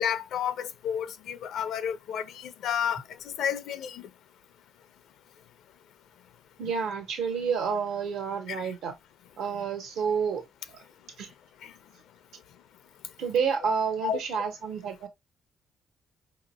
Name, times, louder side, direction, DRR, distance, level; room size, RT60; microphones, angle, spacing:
voice 1, 0.0-4.1 8.5-8.7 11.6-11.7 14.0-14.2, left 8 dB, 80° left, 0.5 m, -31 dB
voice 2, 6.6-8.9 9.4-10.4 10.7-10.8 11.2-11.3 13.2-15.1, right 6 dB, 80° right, 1.3 m, -29 dB
5.3 x 2.8 x 2.3 m
cardioid pair, 90°, 0 cm